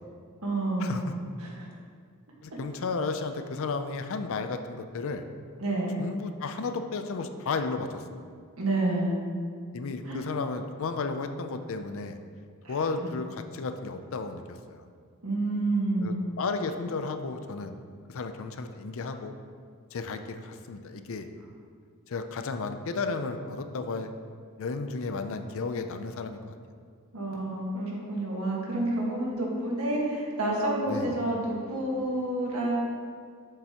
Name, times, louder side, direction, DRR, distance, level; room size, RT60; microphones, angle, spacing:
voice 1, 0.4-1.0 1.4-1.7 5.6-5.9 8.6-9.2 10.0-10.2 12.6-13.1 15.2-16.2 27.1-32.7, right 2 dB, 75° right, -3 dB, 1.6 m, -29 dB
voice 2, 2.4-5.2 6.0-8.0 9.7-12.2 12.7-14.8 16.0-17.8 18.1-19.3 19.9-21.3 22.1-24.1 24.6-26.6 30.9-31.1, left 4 dB, 65° left, 8 dB, 0.5 m, -33 dB
7.5 x 6.8 x 2.9 m, 2.1 s
head